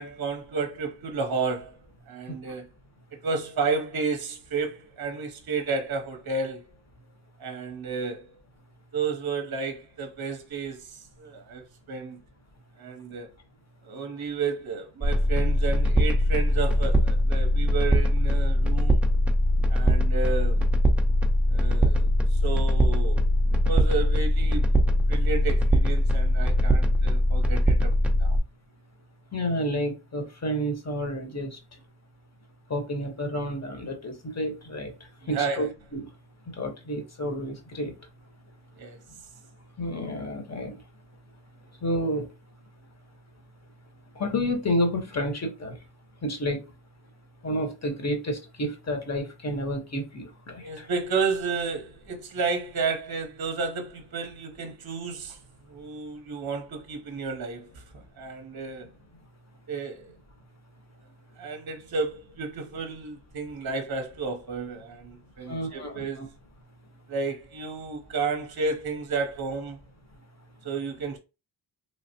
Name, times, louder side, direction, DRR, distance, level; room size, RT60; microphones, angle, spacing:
voice 1, 0.0-1.8 2.1-2.7 3.2-6.7 7.4-8.3 8.9-12.2 12.8-13.3 13.9-19.0 19.7-20.6 21.5-23.2 23.6-24.7 25.1-28.4 35.2-35.7 38.8-39.0 50.6-55.4 55.7-58.9 59.7-60.1 61.4-66.2 67.1-69.8 70.6-71.2, right 4 dB, 50° right, 0.7 m, -32 dB
sound 1, 15.0-28.4, equal, 5° right, 0.5 m, -22 dB
voice 2, 29.3-31.6 32.7-34.9 35.3-35.7 35.9-36.1 36.6-37.9 39.8-40.8 41.8-42.3 44.1-45.8 46.2-46.6 47.4-50.9 65.5-66.3, equal, 30° left, 1.0 m, -30 dB
3.2 x 2.0 x 2.7 m
cardioid pair, 70°, 50 cm